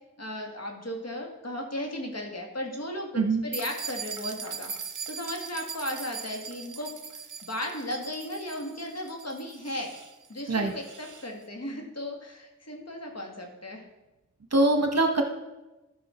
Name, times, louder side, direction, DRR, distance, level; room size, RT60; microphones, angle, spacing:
voice 1, 0.2-4.7 5.1-9.9 10.3-13.8, left 1 dB, 55° left, 1 dB, 1.7 m, -36 dB
sound 1, 3.5-11.3, right 6 dB, 75° right, 0.7 m, -40 dB
voice 2, 14.5-15.2, right 2 dB, 55° right, 4 dB, 1.2 m, -23 dB
12.5 x 5.5 x 4.3 m, 1.0 s
wide cardioid pair, 55°, 31 cm